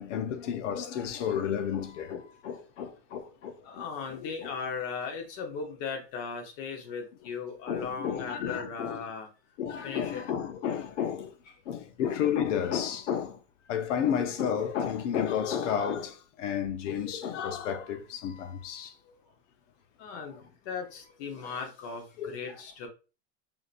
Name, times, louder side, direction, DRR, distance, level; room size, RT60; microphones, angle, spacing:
voice 1, 0.0-3.8 4.1-4.5 7.7-9.0 9.6-11.3 11.7-13.4 13.7-18.9 21.4-21.5 22.2-22.3, left 8 dB, 90° left, 0.8 m, -32 dB
voice 2, 3.6-9.3 9.8-10.2 20.0-20.4 20.7-22.9, left 5 dB, 45° left, 1.0 m, -37 dB
5.0 x 2.7 x 2.5 m
supercardioid pair, 160°, 35 cm